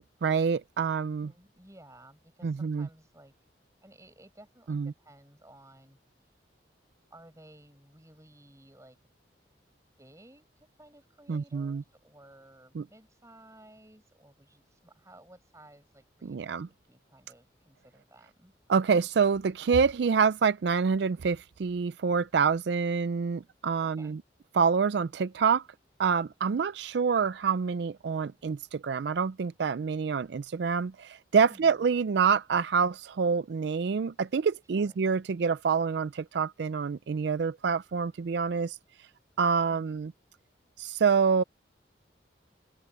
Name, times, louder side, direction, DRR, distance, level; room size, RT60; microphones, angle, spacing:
voice 1, 0.2-1.3 2.4-2.9 4.7-4.9 11.3-11.8 12.8-12.9 16.2-16.7 18.7-24.2 24.5-25.6 26.0-38.8 39.4-40.1 40.8-41.4, right 5 dB, 65° right, 0.4 m, -27 dB
voice 2, 1.2-3.3 3.8-6.0 7.1-9.0 10.0-16.5 16.9-18.5 23.8-24.2 31.5-31.8 34.7-35.0 39.7-40.0, right 1 dB, 15° right, 7.5 m, -56 dB
open air
head